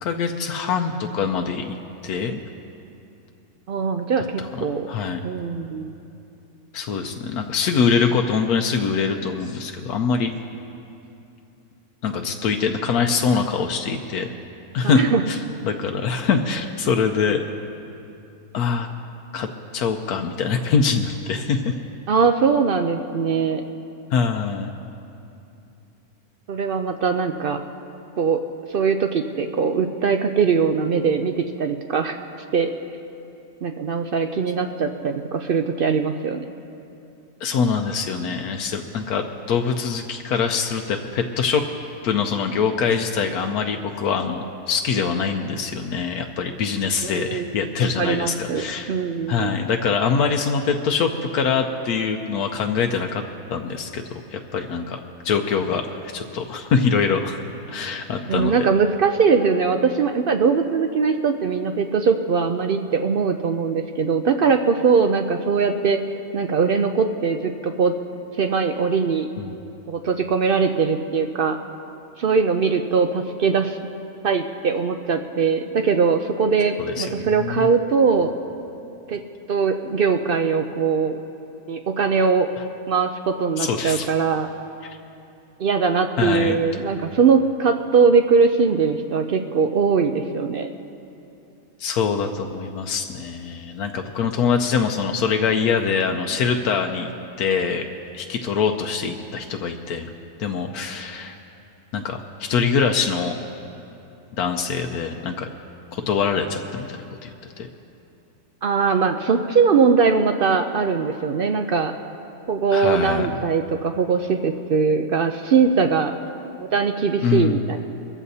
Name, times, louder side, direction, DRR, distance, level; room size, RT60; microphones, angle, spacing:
voice 1, 0.0-1.8 2.0-2.4 4.5-5.2 6.7-10.3 12.0-14.3 14.7-17.4 18.5-18.9 19.3-19.5 19.7-21.7 24.1-24.7 37.4-41.6 42.0-48.9 49.3-53.2 53.5-57.4 57.7-58.7 69.4-69.5 76.8-77.7 83.6-84.1 84.8-85.0 86.2-86.6 91.8-97.1 97.4-97.9 98.1-100.1 100.4-101.3 101.9-103.4 104.4-105.5 105.9-107.7 112.7-113.3 117.2-117.6, left 5 dB, 85° left, 4 dB, 1.2 m, -24 dB
voice 2, 3.7-4.9 5.2-5.9 14.8-15.2 22.1-23.6 26.5-27.6 28.2-28.4 28.7-32.2 32.5-32.7 33.6-36.5 47.0-47.5 48.0-49.5 58.3-66.0 66.3-67.9 68.4-69.3 69.9-71.6 72.2-73.8 74.2-78.3 79.1-79.2 79.5-81.2 81.7-82.5 82.9-84.5 85.6-90.7 108.6-111.9 112.5-116.2 116.6-117.8, right 5 dB, 70° right, 6 dB, 0.5 m, -21 dB
23.0 x 14.5 x 2.8 m, 2.7 s
omnidirectional pair, 1.6 m